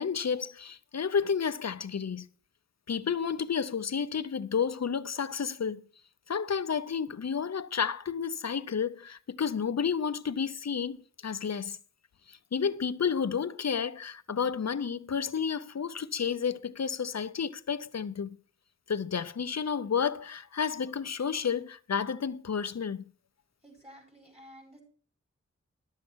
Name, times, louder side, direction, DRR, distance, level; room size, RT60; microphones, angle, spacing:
voice 1, 0.0-2.3 2.9-5.8 6.3-11.0 11.2-11.8 12.3-18.4 18.9-23.0, left 6 dB, 60° left, 0.6 m, -31 dB
voice 2, 23.6-24.8, equal, 20° right, 5.0 m, -52 dB
11.5 x 7.2 x 6.1 m
wide cardioid pair, 60°, 30 cm